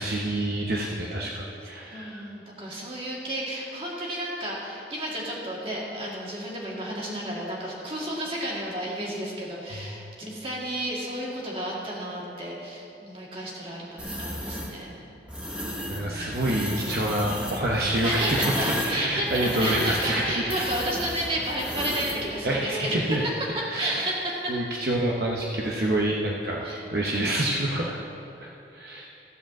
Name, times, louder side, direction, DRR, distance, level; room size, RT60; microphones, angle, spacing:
voice 1, 0.0-2.3 9.7-9.9 15.9-20.7 22.4-23.2 23.7-24.1 24.5-28.0 28.4-29.1, right 1 dB, 55° right, -3 dB, 0.8 m, -27 dB
voice 2, 1.9-15.0 15.9-16.5 18.0-24.5 26.6-26.8, right 1 dB, 30° right, -4 dB, 2.1 m, -32 dB
sound 1, 14.0-14.7 15.3-16.0 16.3-22.2, equal, 5° right, 1.2 m, -33 dB
15.0 x 5.1 x 7.4 m, 2.8 s
head